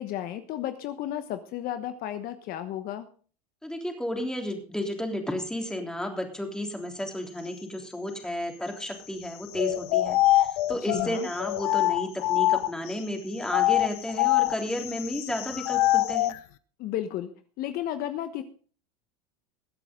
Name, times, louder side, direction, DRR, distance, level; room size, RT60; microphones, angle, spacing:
voice 1, 0.0-3.1 10.9-11.3 16.8-17.3 17.6-18.4, left 12 dB, 50° left, 10 dB, 1.2 m, -33 dB
voice 2, 3.6-16.3, left 1 dB, 5° left, 3 dB, 3.4 m, -32 dB
sound 1, 9.5-12.9 13.4-16.4, left 16 dB, 70° left, 1.0 m, -25 dB
22.0 x 8.3 x 3.8 m, 0.41 s
supercardioid pair, 110°, 20 cm